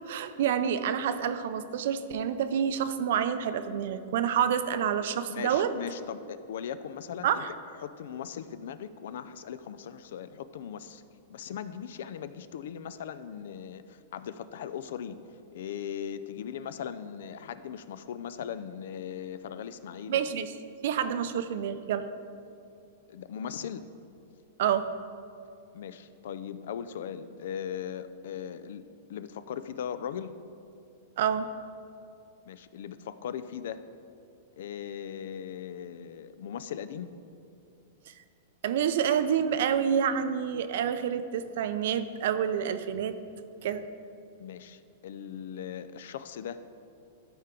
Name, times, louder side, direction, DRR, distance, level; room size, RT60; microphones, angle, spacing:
voice 1, 0.0-5.7 7.2-7.5 20.1-20.5 20.8-22.1 24.6-24.9 31.2-31.5 38.1-38.2 38.6-43.1 43.6-43.9, right 8 dB, 65° right, 11 dB, 0.4 m, -28 dB
voice 2, 5.3-7.4 7.8-11.0 11.3-15.2 15.5-20.2 23.1-23.8 25.7-28.8 29.1-30.3 32.5-33.8 34.6-37.1 44.4-46.6, left 8 dB, 70° left, 13 dB, 0.4 m, -39 dB
12.0 x 4.4 x 3.8 m, 2.6 s
supercardioid pair, 155°, 0 cm